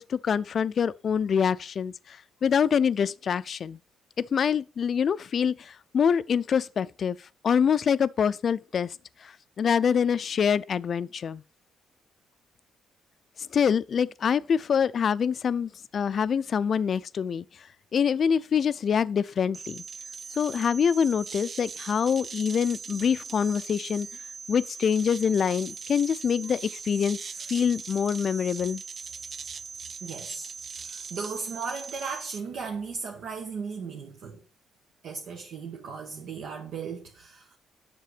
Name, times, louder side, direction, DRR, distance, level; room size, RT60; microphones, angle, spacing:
voice 1, 0.0-2.2 2.4-3.8 4.2-7.2 7.4-8.9 9.2-11.4 13.5-17.4 17.9-19.8 20.4-24.1 24.5-27.2 27.5-28.8, left 7 dB, 50° left, 0.4 m, -25 dB
sound 1, 19.5-32.4, right 5 dB, 45° right, 0.4 m, -40 dB
voice 2, 30.0-34.4 35.0-37.6, right 5 dB, 75° right, 1.3 m, -36 dB
7.6 x 6.7 x 5.0 m
cardioid pair, 90°, 0 cm